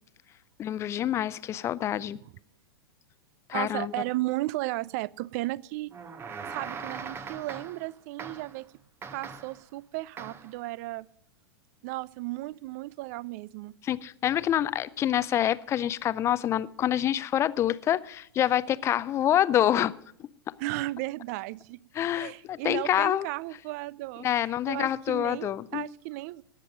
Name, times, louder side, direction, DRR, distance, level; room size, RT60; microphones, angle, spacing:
voice 1, 0.6-2.2 3.5-3.9 13.8-19.9 21.9-23.3 24.2-25.9, left 11 dB, 20° left, 0.4 m, -26 dB
voice 2, 3.5-5.9 6.5-8.7 9.1-11.1 11.8-13.7 20.6-21.8 22.1-26.4, right 19 dB, 40° right, 0.4 m, -34 dB
sound 1, 5.9-7.9 8.2-8.6 9.0-9.6 10.2-10.6, right 5 dB, 20° right, 0.9 m, -40 dB
18.5 x 7.6 x 5.2 m
figure-of-eight pair, 95°, 13 cm